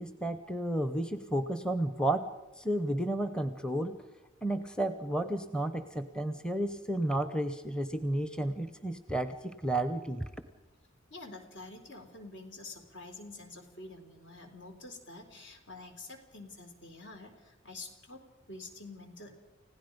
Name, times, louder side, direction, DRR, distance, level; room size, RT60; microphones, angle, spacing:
voice 1, 0.0-2.3 2.6-4.0 4.4-10.2, right 1 dB, 5° left, 10 dB, 0.8 m, -32 dB
voice 2, 11.1-19.4, left 2 dB, 65° left, 5 dB, 3.7 m, -48 dB
30.0 x 16.5 x 5.2 m, 1.1 s
head